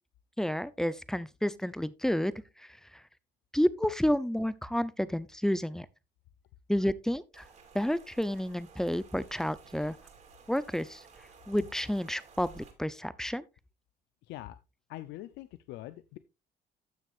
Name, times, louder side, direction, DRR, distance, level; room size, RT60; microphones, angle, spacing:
voice 1, 0.4-3.0 3.5-5.9 6.7-7.5 7.7-10.0 10.5-11.0 11.5-13.4, equal, 5° left, 0.6 m, -30 dB
Rain, 7.3-12.7, right 5 dB, 45° right, 3.1 m, -55 dB
voice 2, 14.2-14.6 14.9-16.2, left 15 dB, 85° left, 0.6 m, -43 dB
14.5 x 6.3 x 2.5 m
cardioid pair, 110°, 17 cm